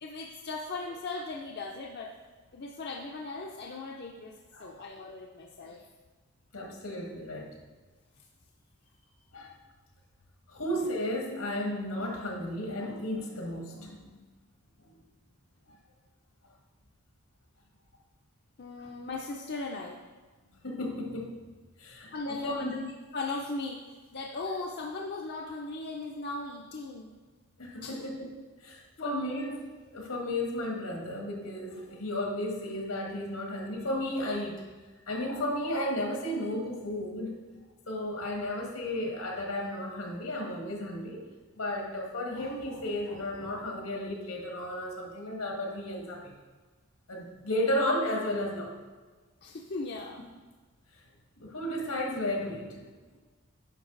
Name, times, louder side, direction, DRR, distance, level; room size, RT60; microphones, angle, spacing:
voice 1, 0.0-2.1 2.5-4.3 4.6-5.8 18.6-20.0 22.1-23.8 24.1-27.1 27.8-28.1 29.0-29.1 49.4-50.2, left 3 dB, 50° left, 0 dB, 0.6 m, -38 dB
voice 2, 4.5-4.9 6.5-7.5 9.3-9.6 10.5-14.0 14.9-15.0 18.8-18.9 20.6-21.4 21.8-22.8 27.6-34.7 35.1-37.4 37.9-41.2 41.6-46.3 47.1-48.8 51.4-52.9, left 1 dB, 80° left, 0 dB, 1.8 m, -34 dB
10.0 x 5.5 x 3.9 m, 1.3 s
head